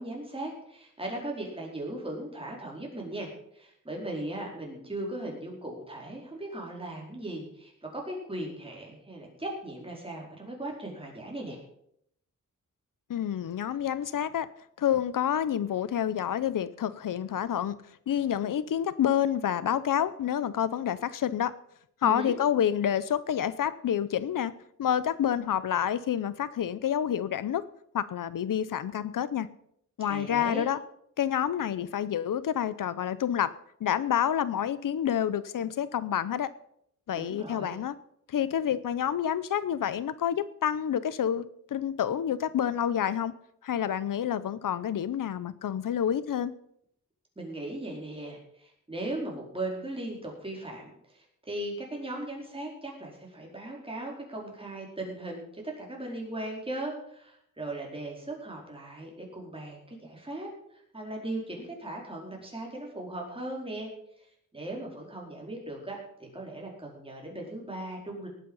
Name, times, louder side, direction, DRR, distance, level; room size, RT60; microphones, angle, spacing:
voice 1, 0.0-11.6 22.0-22.3 30.0-30.7 37.1-37.8 47.4-63.9 64.2-68.3, right 1 dB, 15° right, -1 dB, 4.5 m, -38 dB
voice 2, 13.1-14.5 14.8-17.8 18.1-21.5 22.0-24.5 24.8-27.6 27.9-29.5 30.0-30.8 31.2-33.5 33.8-36.5 37.1-37.9 38.3-41.4 41.7-43.3 43.6-46.5, left 9 dB, 80° left, 16 dB, 0.7 m, -28 dB
18.5 x 8.4 x 5.5 m, 0.71 s
wide cardioid pair, 120°, 32 cm